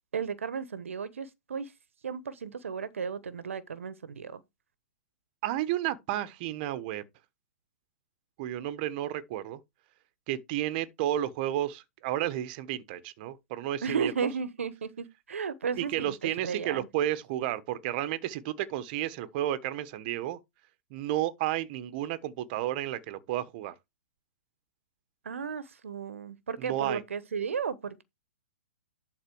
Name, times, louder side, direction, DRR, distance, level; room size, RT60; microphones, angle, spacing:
voice 1, 0.1-1.7 2.0-4.4 13.8-16.1 16.4-16.9 25.2-28.0, right 6 dB, 80° right, 1.1 m, -34 dB
voice 2, 5.4-7.0 8.4-9.6 10.3-14.3 15.8-20.4 20.9-23.7 26.6-27.0, right 13 dB, 40° right, 1.2 m, -32 dB
11.5 x 4.1 x 4.7 m
hypercardioid pair, 130°, 7 cm